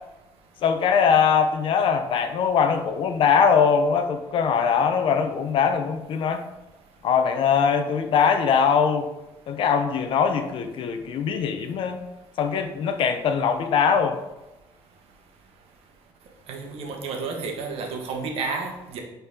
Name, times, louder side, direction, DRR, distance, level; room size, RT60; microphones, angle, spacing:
voice 1, 0.6-6.4 7.0-9.1 9.5-12.0 12.4-14.2, left 6 dB, 60° left, 7 dB, 0.8 m, -21 dB
voice 2, 16.5-19.0, right 4 dB, 85° right, 3 dB, 1.4 m, -31 dB
9.7 x 4.2 x 3.8 m, 0.98 s
cardioid pair, 170°, 10 cm